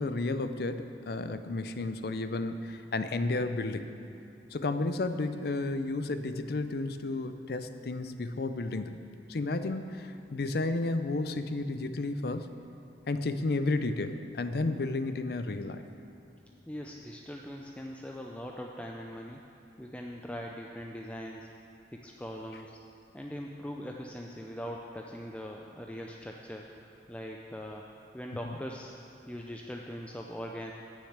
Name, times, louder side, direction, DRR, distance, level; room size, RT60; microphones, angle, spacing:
voice 1, 0.0-3.9 4.5-9.0 9.3-12.5 13.1-15.8 28.4-28.6, left 2 dB, 60° left, 10 dB, 0.5 m, -32 dB
voice 2, 16.7-19.4 19.8-21.5 21.9-22.8 23.1-27.9 28.1-28.9 29.3-30.7, equal, 5° left, 0 dB, 0.4 m, -41 dB
10.0 x 6.5 x 8.0 m, 2.7 s
head